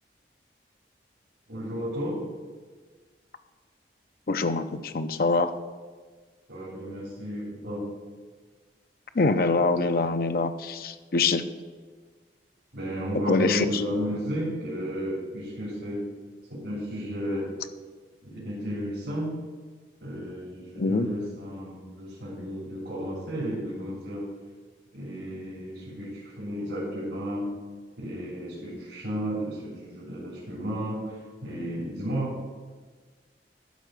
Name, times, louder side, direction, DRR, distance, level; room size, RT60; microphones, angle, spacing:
voice 1, 1.5-2.2 6.5-7.9 12.7-16.1 16.5-17.5 18.2-19.4 20.0-24.3 24.9-27.5 28.0-32.4, equal, 85° right, -7 dB, 3.3 m, -33 dB
voice 2, 4.3-5.5 9.1-11.4 13.3-13.8 20.8-21.1, left 3 dB, 55° left, 9 dB, 0.6 m, -24 dB
12.5 x 4.5 x 6.4 m, 1.5 s
head